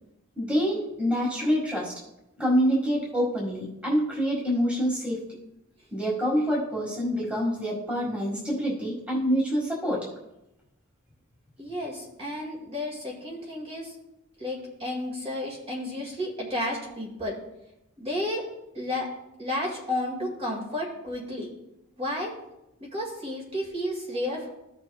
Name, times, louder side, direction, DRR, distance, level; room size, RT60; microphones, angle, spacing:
voice 1, 0.4-1.9 2.4-5.2 5.9-10.0, equal, 5° right, -5 dB, 1.8 m, -26 dB
voice 2, 11.6-14.0 14.4-17.4 18.0-18.5 18.7-19.1 19.4-21.5 22.0-22.3 22.8-24.5, left 1 dB, 25° right, -2 dB, 2.0 m, -32 dB
15.0 x 6.0 x 2.3 m, 0.89 s
head